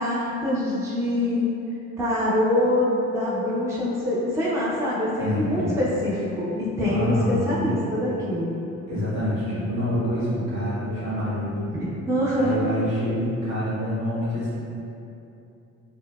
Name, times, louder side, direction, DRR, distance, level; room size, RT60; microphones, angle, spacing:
voice 1, 0.0-1.5 2.0-8.6 11.7-12.6, left 1 dB, 10° right, -7 dB, 0.4 m, -24 dB
voice 2, 5.2-5.8 6.8-7.6 8.9-11.7 12.4-14.5, equal, 60° right, -9 dB, 1.2 m, -26 dB
3.7 x 2.1 x 2.2 m, 2.8 s
cardioid pair, 90°, 30 cm